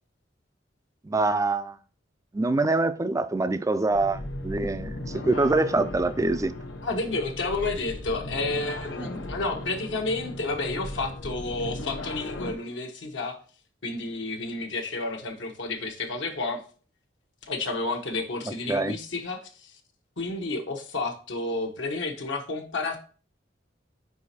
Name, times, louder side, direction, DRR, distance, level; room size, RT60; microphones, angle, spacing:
voice 1, 1.0-1.8 2.3-6.5 9.0-9.1 18.7-19.0, right 3 dB, 15° right, 0.3 m, -25 dB
sound 1, 3.9-12.5, left 1 dB, 90° left, 1.0 m, -36 dB
voice 2, 6.8-13.4 13.8-16.6 17.5-19.7 20.2-23.0, left 3 dB, 70° left, 1.0 m, -31 dB
5.0 x 4.7 x 4.2 m
head